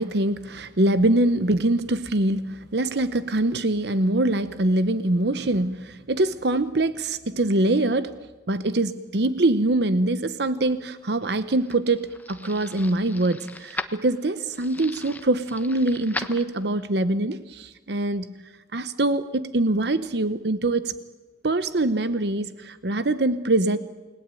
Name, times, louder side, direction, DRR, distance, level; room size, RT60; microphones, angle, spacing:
voice 1, 0.0-8.1 8.5-18.3 18.7-20.9 21.4-23.8, right 2 dB, 65° right, 13 dB, 0.9 m, -24 dB
sound 1, 11.0-16.9, left 2 dB, 10° left, 1.1 m, -38 dB
29.0 x 19.5 x 9.2 m, 1.2 s
head